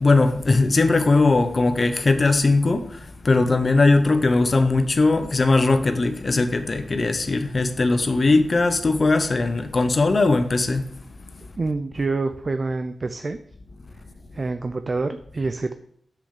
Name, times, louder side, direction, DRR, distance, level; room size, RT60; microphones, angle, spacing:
voice 1, 0.0-3.0 3.2-10.9, left 3 dB, 35° left, 0.8 m, -19 dB
voice 2, 11.6-13.4 14.3-15.7, right 3 dB, 35° right, 0.5 m, -26 dB
7.7 x 7.1 x 5.0 m
wide cardioid pair, 145°, 0 cm